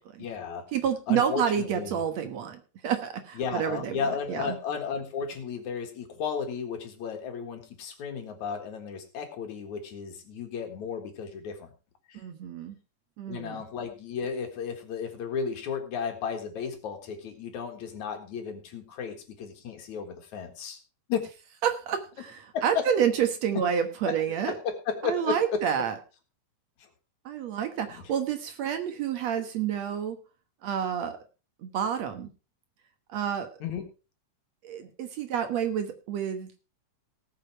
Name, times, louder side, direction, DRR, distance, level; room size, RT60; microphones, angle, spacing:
voice 1, 0.2-0.6 1.1-2.0 3.4-11.7 12.1-12.2 13.3-20.8 21.1-21.2 22.5-22.9 24.1-24.2 24.5-25.6 27.9-28.0 33.6-33.8, left 6 dB, 65° left, 5 dB, 3.0 m, -34 dB
voice 2, 0.7-4.6 12.1-12.8 13.2-13.6 21.6-24.5 25.0-26.0 27.3-30.2 30.6-31.2 31.6-32.3 33.1-33.5 34.6-36.5, right 8 dB, 60° right, 7 dB, 2.2 m, -29 dB
18.5 x 6.9 x 4.5 m, 0.33 s
omnidirectional pair, 3.7 m